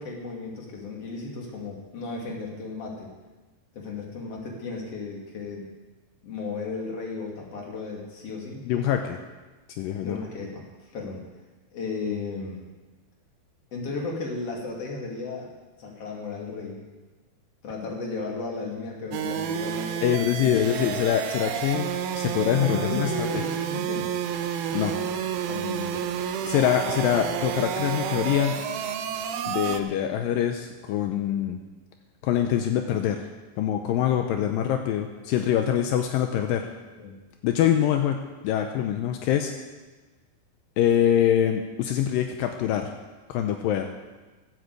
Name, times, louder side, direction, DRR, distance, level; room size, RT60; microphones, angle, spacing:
voice 1, 0.0-3.1 3.7-5.7 6.2-8.6 10.0-11.2 11.7-12.6 13.7-15.5 15.8-16.9 17.6-20.7 22.6-24.1 24.8-25.1 25.5-26.4 37.0-37.2, left 3 dB, 40° left, -1 dB, 3.1 m, -35 dB
voice 2, 8.6-9.2 9.7-10.2 20.0-23.1 24.7-25.0 26.5-28.6 29.5-31.6 32.2-33.2 33.6-36.7 37.4-39.5 40.8-42.9 43.3-43.9, left 10 dB, 80° left, 5 dB, 2.1 m, -24 dB
sound 1, 19.1-29.8, right 9 dB, 75° right, 2.5 m, -30 dB
15.0 x 8.2 x 8.1 m, 1.2 s
omnidirectional pair, 4.7 m